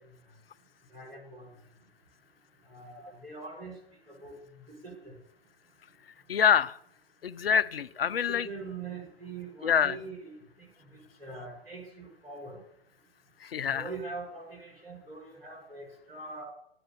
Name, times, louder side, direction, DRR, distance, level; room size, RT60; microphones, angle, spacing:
voice 1, 0.9-1.5 2.7-3.7 4.2-4.3 4.7-5.1 8.1-10.7 11.2-12.6 13.6-16.4, right 3 dB, 75° right, -1 dB, 5.9 m, -43 dB
voice 2, 6.3-6.8 7.2-8.5 9.6-10.0 13.4-13.9, left 8 dB, 70° left, 17 dB, 0.6 m, -26 dB
10.0 x 7.9 x 6.7 m, 0.71 s
figure-of-eight pair, 115°, 30 cm